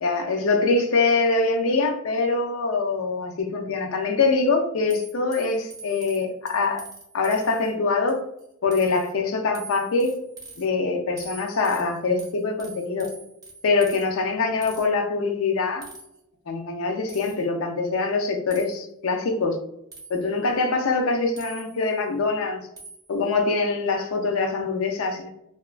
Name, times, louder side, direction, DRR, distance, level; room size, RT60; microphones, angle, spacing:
voice 1, 0.0-6.9 7.1-8.2 8.6-10.1 10.6-13.1 13.6-15.9 16.5-19.6 20.1-22.6 23.1-25.3, left 3 dB, 65° left, 0.4 m, -24 dB
sound 1, 4.9-7.7 8.1-8.4 8.7-9.1 9.5-10.6 11.2-14.1 14.6-14.9 15.8-16.2 17.1-17.4 18.5-18.7 19.9-20.4 21.4-21.9 22.8-23.1, right 3 dB, 15° right, 0.5 m, -44 dB
2.8 x 2.3 x 2.3 m
head